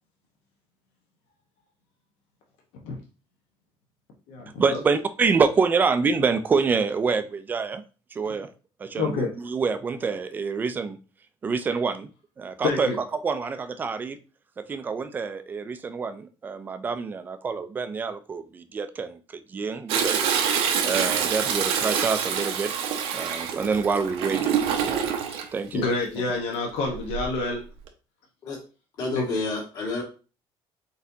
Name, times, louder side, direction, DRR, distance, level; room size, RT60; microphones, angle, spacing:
voice 1, 4.6-7.8 8.1-8.5 8.8-11.0 11.4-12.1 12.4-14.2 14.6-19.2 19.5-20.2 20.8-22.7 23.1-25.1 25.5-25.9, right 5 dB, 20° right, 0.3 m, -26 dB
voice 2, 9.0-9.3 12.6-13.0 25.3-25.4 25.7-27.6 29.1-29.2, left 3 dB, 80° left, 1.0 m, -27 dB
Toilet flush, 19.9-25.5 26.9-27.4 27.9-28.0, right 7 dB, 85° right, 0.7 m, -26 dB
voice 3, 29.0-30.0, left 3 dB, 45° left, 1.7 m, -29 dB
4.1 x 4.0 x 2.7 m
cardioid pair, 180°, 10 cm